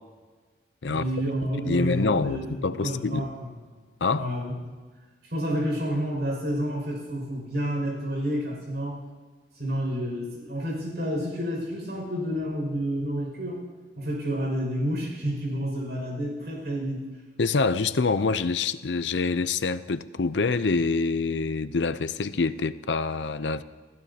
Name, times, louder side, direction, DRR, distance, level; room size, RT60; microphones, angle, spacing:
voice 1, 0.9-3.8 4.1-4.5 5.2-9.0 9.5-13.6 13.9-17.0, equal, 60° right, -1 dB, 6.1 m, -30 dB
voice 2, 1.6-3.3 4.0-4.3 17.4-23.6, left 4 dB, 85° left, 13 dB, 0.6 m, -26 dB
30.0 x 15.0 x 2.9 m, 1.4 s
head